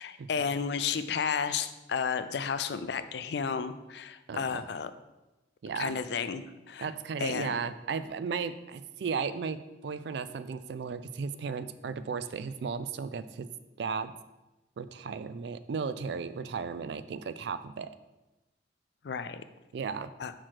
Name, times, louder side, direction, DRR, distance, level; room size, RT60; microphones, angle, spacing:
voice 1, 0.0-4.9 5.8-6.9 7.2-7.6 19.0-19.4 20.2-20.3, left 6 dB, 65° left, 11 dB, 0.4 m, -32 dB
voice 2, 4.3-4.6 5.6-6.0 6.8-13.5 13.8-14.1 14.8-17.9 19.7-20.1, right 5 dB, 65° right, 13 dB, 0.3 m, -35 dB
4.8 x 4.4 x 5.9 m, 1.0 s
head